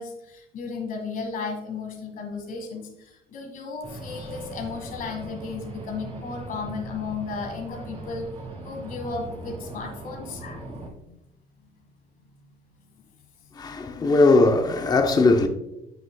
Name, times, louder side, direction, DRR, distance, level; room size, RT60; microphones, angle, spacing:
voice 1, 0.0-8.3 8.6-11.2, left 4 dB, 55° left, 1.6 m, -34 dB
sound 1, 3.8-10.9, right 2 dB, 35° right, 2.0 m, -39 dB
voice 2, 13.5-15.5, left 3 dB, 25° left, 0.6 m, -19 dB
7.9 x 6.2 x 2.2 m
cardioid pair, 110°, 17 cm